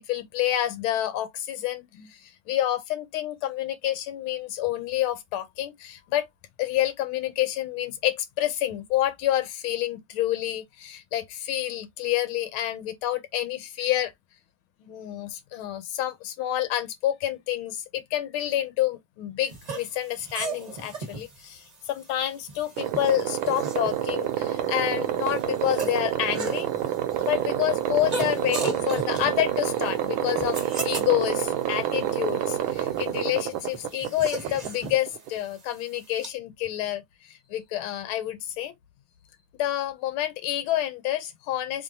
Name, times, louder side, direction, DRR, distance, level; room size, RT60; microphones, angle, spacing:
voice 1, 0.0-6.3 6.6-14.1 14.8-26.7 27.2-38.7 39.6-41.8, left 13 dB, 90° left, 1.5 m, -28 dB
sound 1, 19.5-36.3, right 3 dB, 30° right, 0.7 m, -38 dB
sound 2, 22.8-35.4, right 11 dB, 80° right, 1.4 m, -28 dB
3.5 x 3.4 x 2.6 m
omnidirectional pair, 2.3 m